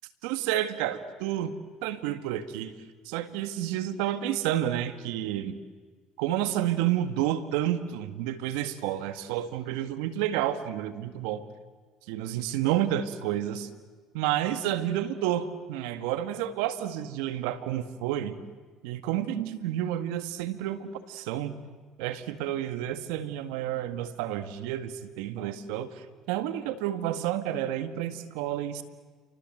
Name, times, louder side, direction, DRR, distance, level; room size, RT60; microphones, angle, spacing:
voice 1, 0.2-2.7 3.1-5.6 6.2-11.4 12.1-13.7 14.1-18.4 18.8-21.6 22.0-28.8, right 12 dB, 80° right, 10 dB, 1.8 m, -30 dB
29.0 x 25.0 x 7.8 m, 1.5 s
supercardioid pair, 85°, 0 cm